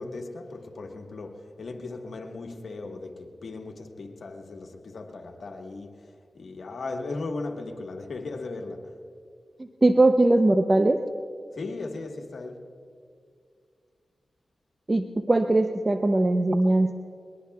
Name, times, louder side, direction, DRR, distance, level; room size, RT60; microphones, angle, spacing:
voice 1, 0.0-9.0 11.5-12.7, left 3 dB, 75° left, 1.4 m, -37 dB
voice 2, 9.8-11.0 14.9-16.9, right 2 dB, 35° right, 0.7 m, -20 dB
22.0 x 21.5 x 2.4 m
cardioid pair, 45°, 0 cm